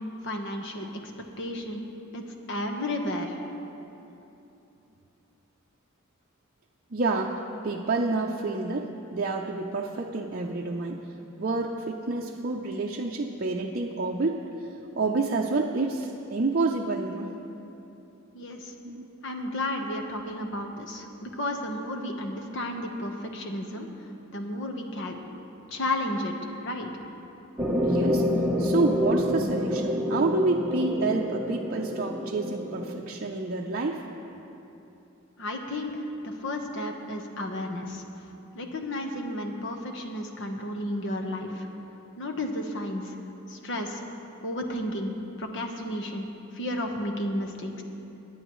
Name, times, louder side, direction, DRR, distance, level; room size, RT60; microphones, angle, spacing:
voice 1, 0.2-1.1 1.4-1.9 2.1-2.2 2.5-3.4 18.3-18.7 19.2-23.9 24.3-25.2 25.7-26.9 35.4-38.0 38.5-41.7 42.2-43.1 43.5-44.0 44.4-45.1 45.4-46.3 46.5-47.8, left 1 dB, 60° left, 3 dB, 1.2 m, -32 dB
voice 2, 6.9-11.0 11.4-17.3 18.8-19.1 27.8-28.3 28.6-34.0, right 3 dB, 45° right, 0 dB, 0.6 m, -28 dB
sound 1, 27.6-33.0, equal, 10° right, 1.0 m, -28 dB
23.5 x 10.0 x 3.1 m, 3.0 s
head